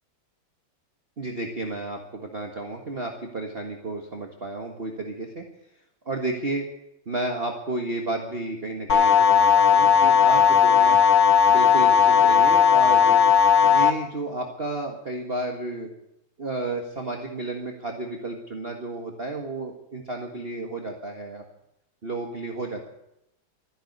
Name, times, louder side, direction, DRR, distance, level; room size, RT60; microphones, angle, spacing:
voice 1, 1.2-5.4 6.1-6.7 7.1-11.0 11.5-13.2 13.6-15.9 16.4-21.4 22.0-22.9, right 2 dB, 30° right, 2 dB, 1.7 m, -32 dB
sound 1, 8.9-13.9, left 8 dB, 60° left, 2.1 m, -17 dB
14.0 x 10.0 x 9.3 m, 0.82 s
omnidirectional pair, 2.2 m